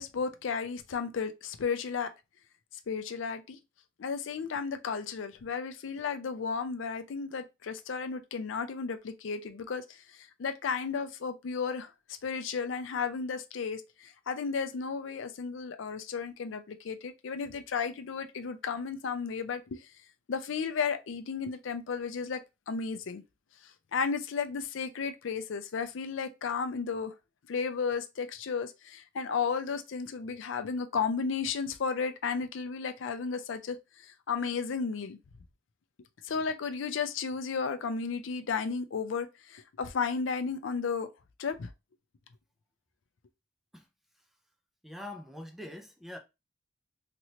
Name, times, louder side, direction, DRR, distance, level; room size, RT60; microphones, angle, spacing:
voice 1, 0.0-2.1 2.9-3.6 4.0-11.9 12.2-19.9 20.3-22.4 22.7-23.2 23.9-27.1 27.5-35.2 36.2-41.1 41.4-41.7, left 5 dB, 75° left, 0.5 m, -33 dB
voice 2, 44.8-46.2, left 1 dB, ahead, 0.4 m, -43 dB
3.0 x 2.9 x 2.8 m
head